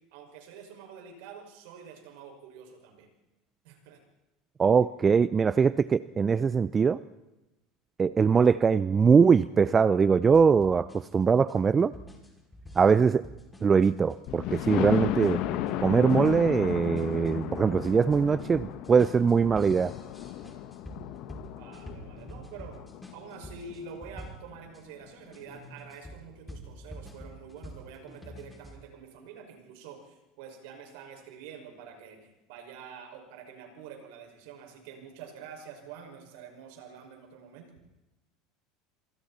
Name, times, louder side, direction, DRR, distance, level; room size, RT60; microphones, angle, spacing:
voice 1, 0.1-3.1 3.6-4.0 21.6-22.8 23.1-37.7, right 6 dB, 70° right, 3 dB, 5.8 m, -47 dB
voice 2, 4.6-7.0 8.0-11.9 12.7-13.3 13.6-15.4 15.8-19.9, right 6 dB, 30° right, 16 dB, 0.6 m, -22 dB
sound 1, 10.3-24.8 25.3-28.8, equal, 10° left, 5.9 m, -47 dB
Thunder, 14.3-24.0 24.6-24.7 25.1-25.2 25.4-25.5, left 12 dB, 60° left, 1.6 m, -34 dB
27.5 x 24.5 x 4.3 m, 0.99 s
hypercardioid pair, 80°, 0 cm